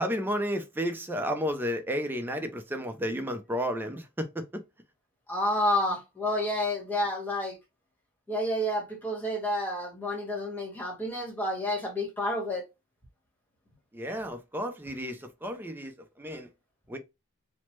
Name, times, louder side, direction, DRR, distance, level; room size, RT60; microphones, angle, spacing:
voice 1, 0.0-4.5 13.9-16.5 16.9-17.0, equal, 10° right, 0.4 m, -32 dB
voice 2, 5.3-7.6 8.3-12.6, left 1 dB, 10° left, 1.1 m, -29 dB
3.1 x 2.0 x 3.0 m
head